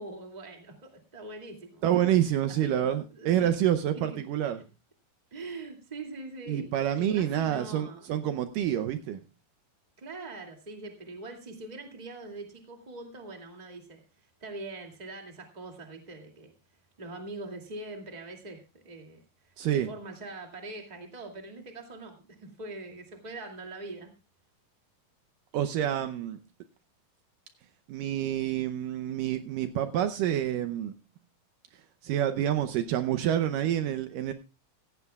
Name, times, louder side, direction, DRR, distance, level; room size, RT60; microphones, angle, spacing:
voice 1, 0.0-2.9 3.1-3.5 3.9-4.2 5.3-6.7 7.0-8.1 10.0-14.0 14.4-16.5 17.0-24.1, right 2 dB, 15° right, 3 dB, 1.9 m, -43 dB
voice 2, 1.8-4.6 6.5-9.2 19.6-19.9 25.5-26.4 27.9-30.9 32.0-34.3, right 11 dB, 75° right, 10 dB, 2.2 m, -28 dB
16.0 x 15.0 x 2.4 m, 0.30 s
omnidirectional pair, 4.2 m